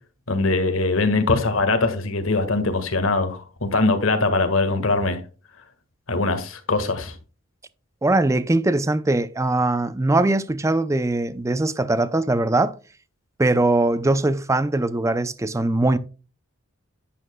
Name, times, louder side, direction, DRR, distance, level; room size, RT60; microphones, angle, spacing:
voice 1, 0.3-5.2 6.1-7.1, left 3 dB, 75° left, 1.6 m, -22 dB
voice 2, 8.0-12.7 13.4-16.0, right 2 dB, 15° right, 0.4 m, -21 dB
11.0 x 8.6 x 2.2 m
head